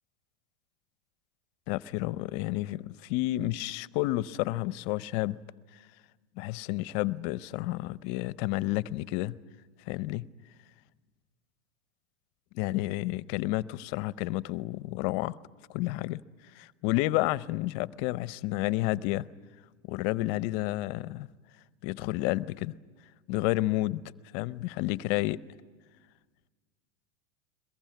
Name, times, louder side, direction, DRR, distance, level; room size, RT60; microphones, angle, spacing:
voice 1, 1.7-5.4 6.4-9.4 9.9-10.3 12.5-15.4 15.7-16.2 16.5-19.3 19.9-21.3 21.8-22.7 23.3-24.0 24.3-25.4, left 18 dB, 55° left, 0.7 m, -30 dB
22.5 x 21.5 x 9.2 m
hypercardioid pair, 115°, 38 cm